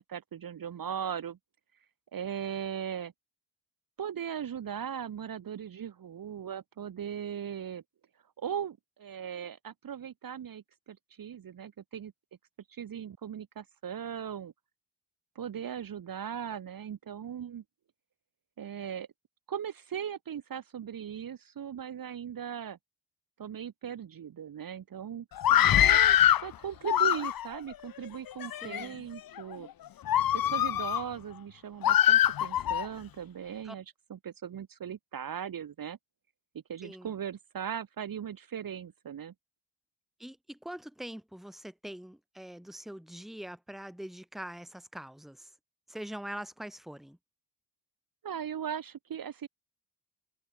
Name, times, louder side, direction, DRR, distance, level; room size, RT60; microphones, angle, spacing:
voice 1, 0.0-1.4 2.1-3.1 4.0-7.8 8.4-12.1 12.7-14.5 15.3-17.6 18.6-19.1 19.5-22.8 23.4-25.3 25.8-29.7 30.3-33.8 34.1-36.0 36.7-39.3 48.2-49.5, right 8 dB, 40° right, 1.3 m, -38 dB
Screaming, 25.4-26.5 26.8-27.6 28.3-28.8 29.4-29.5 30.1-31.0 31.8-32.9, left 11 dB, 45° left, 0.8 m, -23 dB
voice 2, 25.5-26.0 28.6-28.9 33.6-33.7 36.8-37.1 40.2-45.5 45.9-47.2, right 1 dB, ahead, 1.7 m, -43 dB
supercardioid pair, 60°, 50 cm